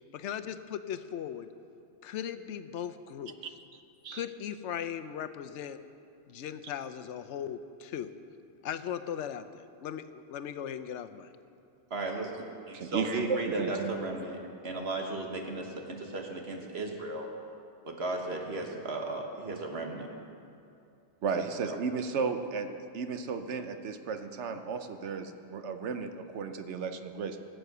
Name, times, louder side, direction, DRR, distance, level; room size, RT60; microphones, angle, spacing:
voice 1, 0.1-1.5 2.0-3.3 4.1-5.8 6.3-8.1 8.6-11.3, left 9 dB, 85° left, 10 dB, 0.9 m, -38 dB
voice 2, 3.7-4.2 12.7-13.9 21.2-22.7 22.9-27.4, right 5 dB, 80° right, 8 dB, 1.1 m, -34 dB
voice 3, 11.9-17.3 17.8-20.1 21.6-21.8, right 2 dB, 65° right, 2 dB, 1.7 m, -35 dB
16.5 x 7.8 x 6.7 m, 2.6 s
omnidirectional pair, 1.2 m